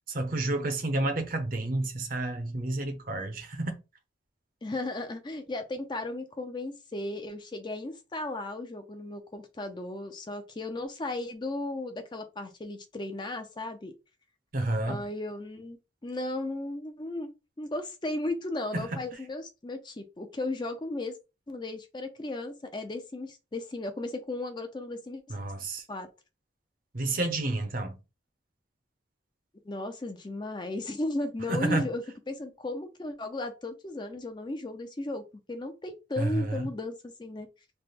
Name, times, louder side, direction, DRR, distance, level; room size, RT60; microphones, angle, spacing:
voice 1, 0.1-3.7 14.5-15.0 18.7-18.9 25.3-25.8 26.9-28.0 31.5-31.9 36.2-36.6, right 2 dB, 45° right, 0.7 m, -30 dB
voice 2, 4.6-13.9 14.9-15.8 16.0-17.3 17.6-21.2 21.5-25.2 25.9-26.1 29.7-37.5, left 2 dB, 25° left, 0.4 m, -35 dB
3.3 x 2.1 x 4.1 m
head